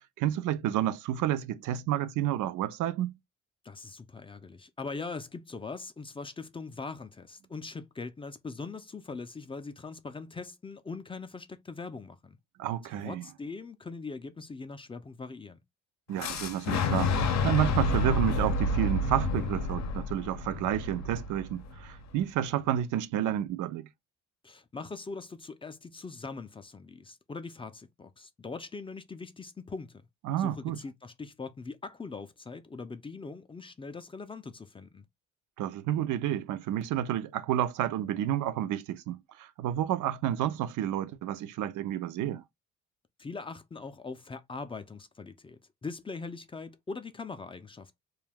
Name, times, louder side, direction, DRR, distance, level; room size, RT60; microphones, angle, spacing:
voice 1, 0.2-3.2 12.6-13.3 16.1-23.9 30.2-30.8 35.6-42.4, right 11 dB, 80° right, 0.5 m, -30 dB
voice 2, 3.6-12.4 12.8-15.6 24.4-30.1 30.4-35.0 43.2-48.0, left 4 dB, 20° left, 0.4 m, -41 dB
Boom, 16.2-22.1, left 2 dB, 65° left, 0.6 m, -29 dB
2.3 x 2.2 x 3.3 m
cardioid pair, 90°, 30 cm